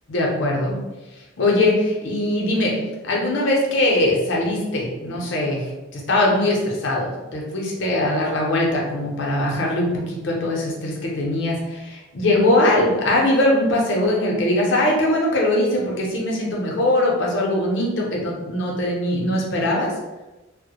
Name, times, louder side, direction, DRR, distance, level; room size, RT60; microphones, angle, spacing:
voice 1, 0.1-0.8 1.4-2.7 3.0-19.9, left 1 dB, 60° left, -2 dB, 0.6 m, -21 dB
2.1 x 2.0 x 2.8 m, 1.1 s
head